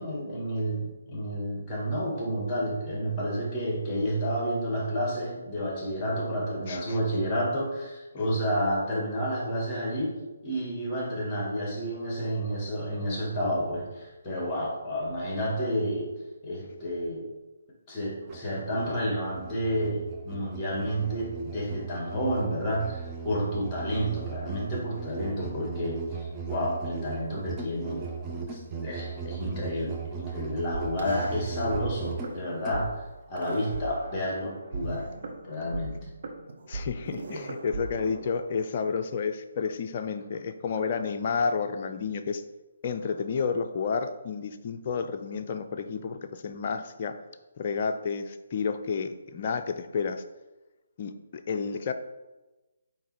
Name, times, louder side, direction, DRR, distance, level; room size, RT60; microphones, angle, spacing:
voice 1, 0.0-10.2 10.4-16.1 16.4-17.2 17.9-28.1 28.5-33.0 33.3-35.1 35.5-36.0, equal, 20° left, -2 dB, 2.1 m, -30 dB
voice 2, 6.7-7.0 8.2-8.3 36.7-42.4 42.8-47.2 47.6-50.2 51.0-51.9, left 5 dB, 40° left, 6 dB, 0.5 m, -31 dB
Musical instrument, 18.2-32.8, right 5 dB, 20° right, 0.8 m, -38 dB
sound 1, 30.7-31.8 32.1-32.3 32.7-32.8 33.4-34.4 34.7-38.7, right 3 dB, 55° right, 1.0 m, -37 dB
8.5 x 3.1 x 4.5 m, 1.1 s
figure-of-eight pair, 145°, 0 cm